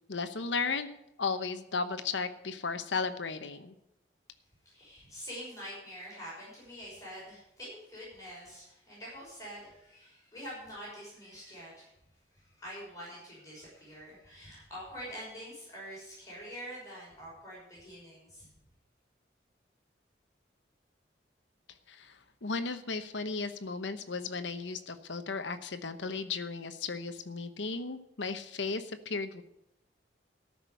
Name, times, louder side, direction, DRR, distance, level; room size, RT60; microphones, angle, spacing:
voice 1, 0.1-0.9 1.2-3.7 21.9-22.1 22.4-29.4, left 4 dB, 90° left, 10 dB, 1.0 m, -35 dB
voice 2, 4.6-11.9 12.3-18.5, equal, 20° left, -7 dB, 6.0 m, -46 dB
13.5 x 6.0 x 9.3 m, 0.83 s
head